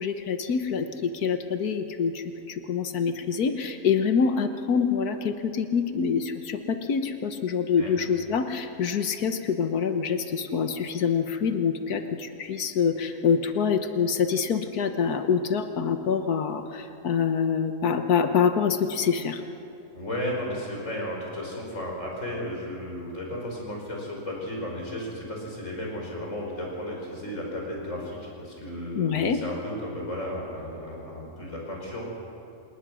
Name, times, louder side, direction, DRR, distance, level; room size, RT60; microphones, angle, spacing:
voice 1, 0.0-19.4 29.0-29.4, left 6 dB, 75° left, 8 dB, 1.6 m, -26 dB
voice 2, 19.9-32.0, left 1 dB, 50° left, -2 dB, 5.7 m, -34 dB
27.5 x 19.5 x 6.2 m, 2.9 s
omnidirectional pair, 1.6 m